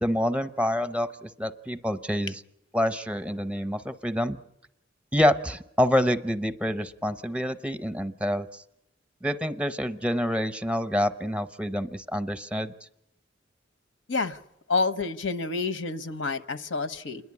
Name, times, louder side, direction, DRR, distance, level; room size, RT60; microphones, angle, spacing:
voice 1, 0.0-2.4 2.7-4.4 5.1-8.6 9.2-12.7, equal, 5° right, 12 dB, 0.7 m, -27 dB
voice 2, 14.1-14.4 14.7-17.3, left 4 dB, 85° left, 11 dB, 1.0 m, -29 dB
28.5 x 11.0 x 9.7 m, 0.84 s
head